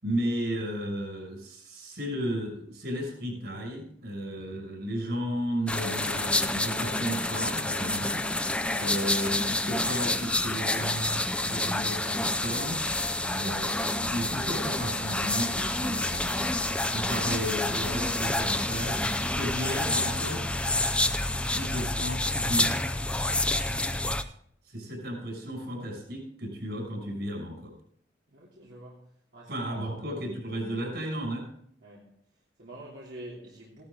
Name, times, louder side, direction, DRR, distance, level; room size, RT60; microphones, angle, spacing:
voice 1, 0.0-8.2 8.8-12.8 13.3-16.5 16.9-20.4 21.5-22.9 24.6-27.7 29.5-31.5, equal, 65° right, 6.2 m, -34 dB
sound 1, 5.7-24.2, left 2 dB, 5° left, 0.6 m, -28 dB
voice 2, 28.3-30.0 31.8-33.9, right 1 dB, 85° right, 3.1 m, -47 dB
16.0 x 12.0 x 3.7 m
head